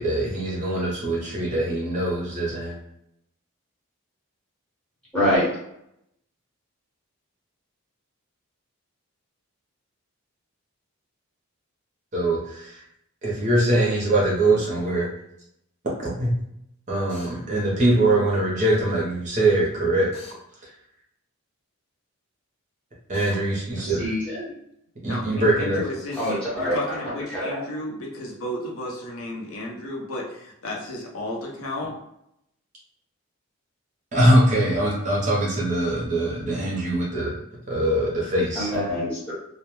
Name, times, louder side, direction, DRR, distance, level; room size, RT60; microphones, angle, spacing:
voice 1, 0.0-2.8 12.1-12.8 13.2-15.1 16.0-16.3 16.9-20.1 20.6-20.7 23.1-24.1 25.0-25.8 34.1-37.3 37.7-38.7, right 1 dB, 35° right, -5 dB, 0.7 m, -22 dB
voice 2, 5.1-5.5 23.8-24.5 26.2-27.0 27.3-27.6 38.5-39.3, equal, 5° left, -10 dB, 1.0 m, -25 dB
Drill, 17.1-17.3 20.1-20.4 23.1-23.4 26.1-26.4, left 1 dB, 25° left, 0.6 m, -44 dB
voice 3, 25.1-32.0, left 1 dB, 70° left, -2 dB, 0.6 m, -33 dB
2.2 x 2.1 x 2.9 m, 0.78 s
head